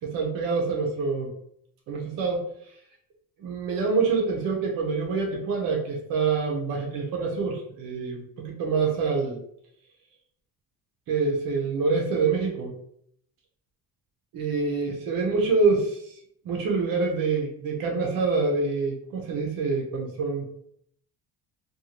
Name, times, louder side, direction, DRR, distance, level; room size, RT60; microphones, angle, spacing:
voice 1, 0.0-1.3 1.9-2.4 3.4-9.4 11.1-12.7 14.3-16.1 16.4-20.6, right 4 dB, 65° right, 0 dB, 0.7 m, -26 dB
2.6 x 2.3 x 2.9 m, 0.69 s
cardioid pair, 175°, 37 cm